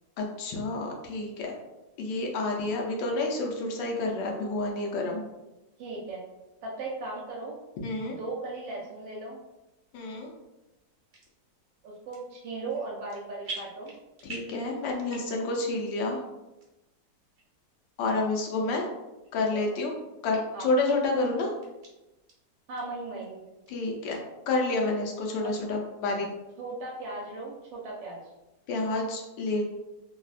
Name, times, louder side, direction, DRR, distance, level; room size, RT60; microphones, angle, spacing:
voice 1, 0.2-1.5 2.0-5.3 7.8-8.2 9.9-10.3 14.2-16.2 18.0-18.9 19.3-19.9 20.2-21.5 23.7-24.2 24.5-26.3 28.7-29.6, left 2 dB, 80° left, 0 dB, 1.3 m, -29 dB
voice 2, 5.8-6.2 6.6-7.6 8.1-9.4 11.8-13.9 18.7-18.8 19.5-19.8 20.5-20.7 22.7-23.4 25.4-25.5 26.6-28.2, right 3 dB, 80° right, -4 dB, 1.2 m, -37 dB
sound 1, 11.1-11.3 11.9-12.4 12.7-13.2 13.4-14.6 15.0-15.5 15.9-16.0 16.6-16.7 17.4-17.5 18.2-18.3 18.7-18.8 19.2-19.9 20.3-20.4 20.9-21.0 21.2-21.9 22.3-22.4 22.7-22.8 23.2-23.7 24.1-24.2, right 3 dB, 60° right, 1.0 m, -43 dB
3.3 x 2.0 x 2.3 m, 1.0 s
omnidirectional pair, 2.0 m